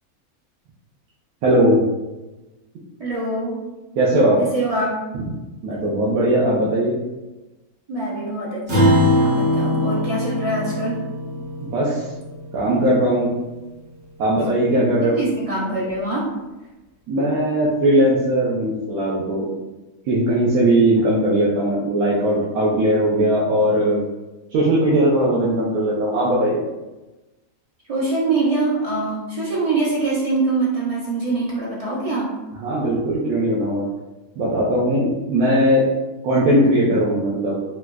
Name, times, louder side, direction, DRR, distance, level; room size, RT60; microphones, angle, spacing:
voice 1, 1.4-1.8 4.0-4.4 5.1-5.2 5.6-7.0 11.6-12.1 12.5-13.3 14.2-15.2 17.1-19.6 20.1-24.0 24.5-26.6 32.6-33.8 34.4-35.9 36.2-37.5, right 1 dB, 75° right, -7 dB, 1.1 m, -19 dB
voice 2, 3.0-3.7 4.4-5.0 7.9-11.0 15.2-16.4 27.9-32.3, right 2 dB, 40° right, -6 dB, 0.5 m, -24 dB
Acoustic guitar, 8.7-13.4, left 1 dB, 60° right, 1.4 m, -22 dB
4.2 x 2.2 x 2.3 m, 1.1 s
omnidirectional pair, 1.5 m